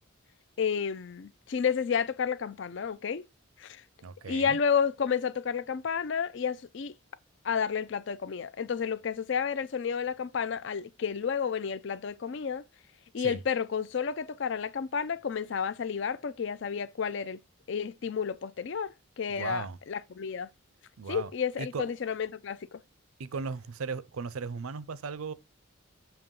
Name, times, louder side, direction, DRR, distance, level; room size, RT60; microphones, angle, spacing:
voice 1, 0.6-3.2 3.6-3.8 4.3-6.9 7.4-12.6 13.1-17.4 17.7-20.5 21.1-22.8, left 6 dB, 55° left, 0.4 m, -31 dB
voice 2, 4.0-4.6 13.2-13.4 19.3-19.8 21.0-21.3 21.6-21.8 23.2-25.3, right 5 dB, 85° right, 0.5 m, -37 dB
7.1 x 2.9 x 5.3 m
head